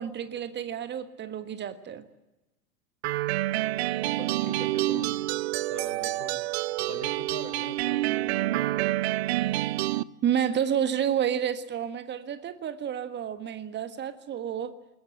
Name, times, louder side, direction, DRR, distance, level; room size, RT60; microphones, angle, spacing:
voice 1, 0.0-2.0 10.2-14.7, right 9 dB, 25° right, 11 dB, 1.5 m, -30 dB
sound 1, 3.0-10.0, right 17 dB, 45° right, 0.7 m, -28 dB
voice 2, 4.0-5.2 5.7-6.3 6.8-8.8, left 1 dB, 90° left, 6 dB, 4.6 m, -42 dB
21.5 x 20.5 x 9.1 m, 0.99 s
figure-of-eight pair, 90°, 46 cm